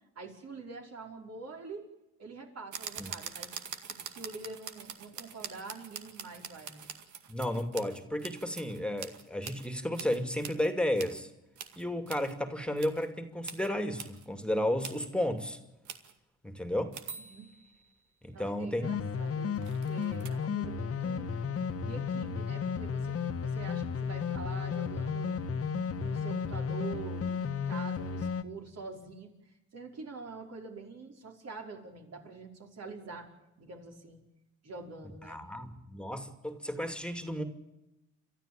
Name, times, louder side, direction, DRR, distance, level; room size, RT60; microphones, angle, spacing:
voice 1, 0.2-1.9 2.2-3.5 3.9-6.9 17.1-17.5 18.3-21.3 21.8-25.4 25.9-33.3 33.6-34.2 34.6-35.4, right 4 dB, 55° right, 5.3 m, -45 dB
sound 1, 2.7-9.7 9.9-11.2 11.6-12.3 12.8-13.1 13.4-13.7 13.9-14.3 14.8-15.1 15.8-16.1 16.9-17.9 19.6-20.3, right 8 dB, 75° right, 2.1 m, -44 dB
voice 2, 7.3-11.3 11.8-15.6 16.4-17.0 18.2-19.0 35.3-37.4, left 1 dB, 5° left, 2.6 m, -33 dB
sound 2, 18.8-28.4, left 6 dB, 50° left, 1.6 m, -33 dB
29.5 x 13.5 x 8.9 m
cardioid pair, 90°, 30 cm